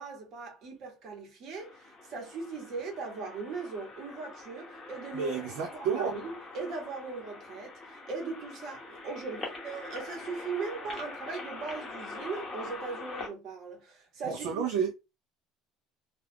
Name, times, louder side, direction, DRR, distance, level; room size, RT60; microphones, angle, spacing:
voice 1, 0.0-5.4 5.9-14.6, right 4 dB, 40° right, 1.0 m, -39 dB
sound 1, 1.6-13.3, left 3 dB, 15° left, 0.8 m, -44 dB
voice 2, 5.1-6.2 14.2-14.9, right 6 dB, 70° right, 0.4 m, -30 dB
2.3 x 2.3 x 3.3 m
cardioid pair, 175°, 0 cm